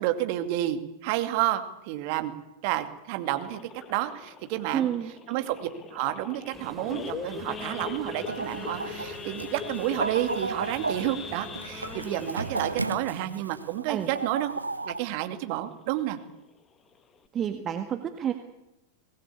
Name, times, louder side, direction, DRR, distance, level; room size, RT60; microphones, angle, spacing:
voice 1, 0.0-2.3 2.6-3.6 3.9-4.9 5.3-14.5 14.8-16.2, right 14 dB, 45° right, 8 dB, 2.3 m, -30 dB
Idling / Accelerating revving vroom / Sawing, 3.4-14.5 14.8-15.1 15.3-15.4 15.9-16.1 16.6-16.7 16.9-17.3, left 6 dB, 25° left, 2.2 m, -41 dB
voice 2, 4.7-5.1 13.9-14.1 17.3-18.3, right 9 dB, 25° right, 7 dB, 1.8 m, -29 dB
sound 1, 6.5-12.9, right 1 dB, 5° right, 5.0 m, -47 dB
Chicken rooster, 8.3-15.0, right 3 dB, 80° right, 0.9 m, -34 dB
24.0 x 19.0 x 8.6 m, 0.96 s
figure-of-eight pair, 90°, 0 cm